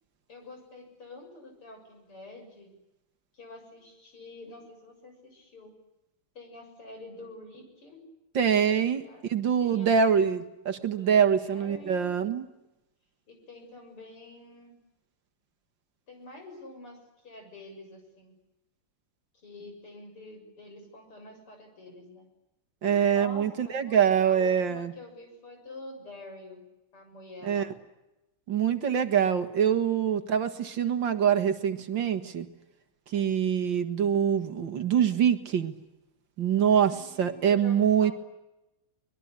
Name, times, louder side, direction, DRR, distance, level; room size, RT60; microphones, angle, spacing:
voice 1, 0.3-2.7 3.3-5.7 6.3-8.1 8.9-9.2 9.6-10.2 11.0-12.2 13.3-14.7 16.1-17.0 17.2-18.3 19.4-22.3 23.0-26.6 26.9-27.7 33.1-33.5 36.8-38.1, left 2 dB, 90° left, 4 dB, 8.0 m, -47 dB
voice 2, 8.4-9.0 9.3-12.5 22.8-24.9 27.4-27.7 28.5-32.5 33.1-35.7 36.4-38.1, right 8 dB, 60° right, 9 dB, 2.2 m, -24 dB
24.0 x 21.5 x 9.8 m, 0.94 s
omnidirectional pair, 2.4 m